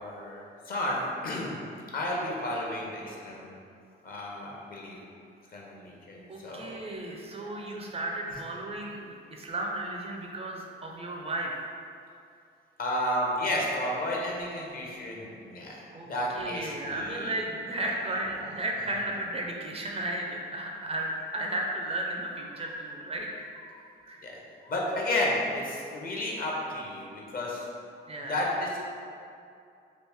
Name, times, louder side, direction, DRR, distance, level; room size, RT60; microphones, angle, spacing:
voice 1, 0.0-1.5 1.9-3.6 4.0-5.0 5.5-6.9 8.3-8.4 12.8-17.3 18.4-18.5 23.7-23.8 24.2-24.3 24.6-27.7 28.3-28.8, left 1 dB, 45° left, -3 dB, 0.7 m, -32 dB
voice 2, 6.3-11.7 15.9-16.1 16.3-23.5 24.0-24.3 28.1-28.3, right 1 dB, 30° right, -1 dB, 0.4 m, -34 dB
3.1 x 2.4 x 3.4 m, 2.5 s
cardioid pair, 90°, 20 cm